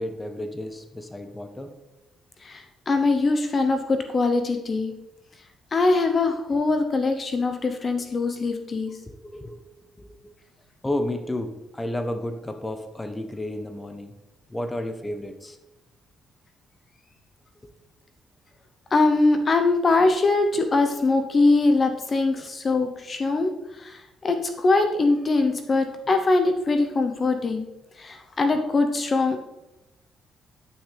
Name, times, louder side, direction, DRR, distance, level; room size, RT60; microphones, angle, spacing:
voice 1, 0.0-1.7 9.1-9.7 10.0-10.2 10.8-14.1 14.5-15.6 22.4-22.5, left 1 dB, 15° left, 7 dB, 0.9 m, -32 dB
voice 2, 2.4-4.9 5.7-9.0 18.9-27.7 28.0-29.4, left 3 dB, 40° left, 7 dB, 0.8 m, -22 dB
9.7 x 6.1 x 3.3 m, 0.94 s
cardioid pair, 90°, 0 cm